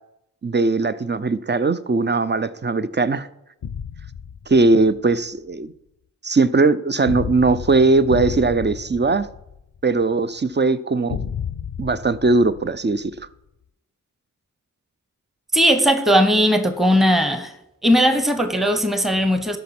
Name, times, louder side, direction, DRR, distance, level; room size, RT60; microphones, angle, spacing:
voice 1, 0.4-3.3 4.5-5.7 6.2-9.3 9.8-11.2 11.8-13.1, right 3 dB, 30° right, 0.6 m, -19 dB
sound 1, 3.6-5.0 7.1-10.0 11.1-13.2, left 7 dB, 85° left, 0.6 m, -32 dB
voice 2, 15.5-17.5 17.8-19.6, equal, ahead, 1.1 m, -18 dB
13.0 x 5.3 x 6.0 m
wide cardioid pair, 45°, 34 cm